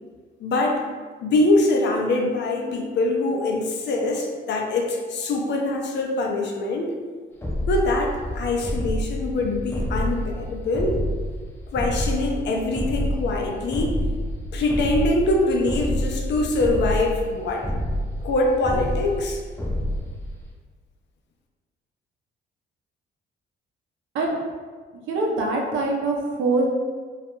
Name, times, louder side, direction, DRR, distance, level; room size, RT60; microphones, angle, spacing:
voice 1, 0.4-0.8 1.2-7.0 7.7-11.0 11.7-14.0 14.5-17.7 18.2-19.4, left 2 dB, 60° left, 1 dB, 0.5 m, -23 dB
sound 1, 7.4-20.5, equal, 10° left, 0.5 m, -28 dB
voice 2, 25.1-26.6, right 3 dB, 80° right, -1 dB, 0.5 m, -23 dB
2.3 x 2.1 x 3.0 m, 1.5 s
cardioid pair, 90°, 20 cm